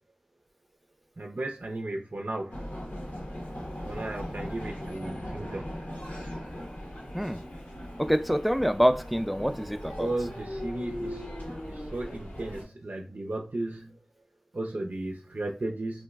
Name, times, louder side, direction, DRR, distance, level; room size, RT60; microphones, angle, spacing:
voice 1, 1.2-2.6 3.9-5.7 10.0-11.3 11.7-14.0 14.5-16.0, right 2 dB, 70° right, 0.4 m, -35 dB
sound 1, 2.5-12.6, equal, 85° left, 0.9 m, -39 dB
voice 2, 8.0-10.1, equal, ahead, 0.3 m, -26 dB
3.0 x 2.5 x 2.3 m
wide cardioid pair, 45°, 3 cm